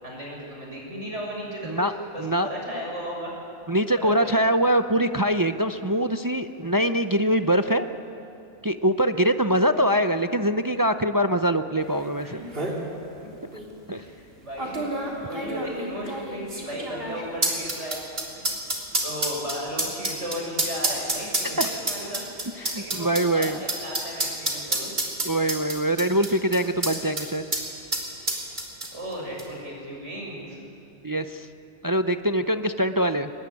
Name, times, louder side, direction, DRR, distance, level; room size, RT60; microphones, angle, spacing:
voice 1, 0.0-1.8 2.1-3.3 3.9-4.4 12.2-12.6 13.2-13.3 13.9-18.0 18.3-18.5 19.0-22.2 22.7-24.9 28.9-30.6, equal, 75° right, -2 dB, 7.1 m, -35 dB
voice 2, 3.7-7.9 8.6-12.4 13.9-14.0 21.4-21.7 22.6-23.6 25.2-27.4 31.0-31.5 31.8-33.3, right 1 dB, 25° right, 8 dB, 0.5 m, -23 dB
sound 1, 12.0-12.1 12.3-12.8 13.5-13.6 14.6-27.3 27.5-27.6 27.9-29.1 29.4-29.5, right 2 dB, 55° right, 3.7 m, -28 dB
23.5 x 20.0 x 9.9 m, 2.7 s
omnidirectional pair, 1.2 m